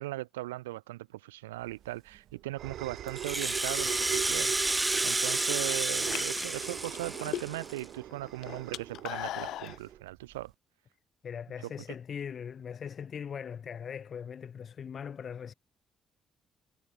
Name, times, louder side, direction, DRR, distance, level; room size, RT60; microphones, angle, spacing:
voice 1, 0.0-4.5 5.0-10.5 11.6-11.7, right 18 dB, 85° right, 1.7 m, -38 dB
sound 1, 1.7-10.5, right 11 dB, 65° right, 1.1 m, -40 dB
Rattle (instrument), 3.1-7.8, right 2 dB, 15° right, 2.1 m, -31 dB
sound 2, 4.9-5.4 6.0-7.8 8.1-9.8, left 13 dB, 65° left, 0.7 m, -38 dB
voice 2, 11.2-15.5, left 7 dB, 50° left, 1.5 m, -40 dB
hypercardioid pair, 45°, 0 cm